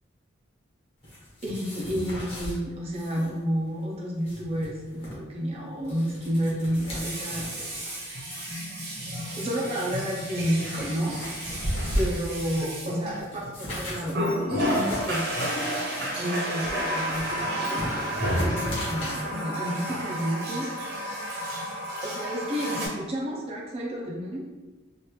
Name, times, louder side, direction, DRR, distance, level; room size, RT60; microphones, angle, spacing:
sound 1, 1.0-2.6 2.9-3.3 3.5-3.6 4.1-5.1 5.7-8.0 8.3-8.6 9.4-9.5 10.0-12.7 13.0-19.2, equal, 30° left, 1.2 m, -36 dB
voice 1, 1.4-7.5 9.4-11.2 11.9-14.2 14.7-15.2 16.2-20.7 22.0-24.5, equal, 30° right, -3 dB, 0.5 m, -30 dB
Water tap faucet, 3.2-3.3 6.7-13.6 14.1-22.9, equal, 55° right, 0.8 m, -31 dB
3.0 x 2.4 x 3.2 m, 1.2 s
head